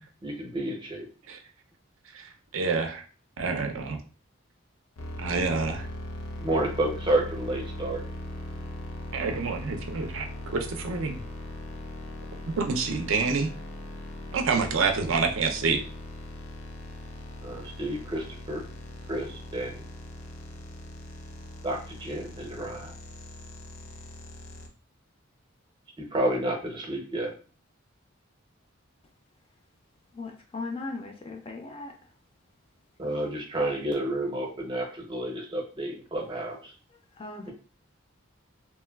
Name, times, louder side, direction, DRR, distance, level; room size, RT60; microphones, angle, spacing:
voice 1, 0.2-1.0 6.4-8.0 17.4-18.6 19.1-19.8 21.6-22.9 26.1-27.3 33.0-36.7, right 1 dB, 25° right, 0 dB, 0.6 m, -30 dB
voice 2, 2.5-3.0 3.4-4.0 5.2-5.9 9.1-10.3 10.5-11.2 12.6-13.5 14.3-15.8, right 4 dB, 70° right, 4 dB, 0.5 m, -27 dB
sound 1, 5.0-24.7, left 1 dB, 75° left, 0.5 m, -40 dB
voice 3, 30.1-31.9 37.1-37.5, left 3 dB, 25° left, 3 dB, 0.3 m, -37 dB
3.0 x 2.2 x 2.2 m, 0.38 s
head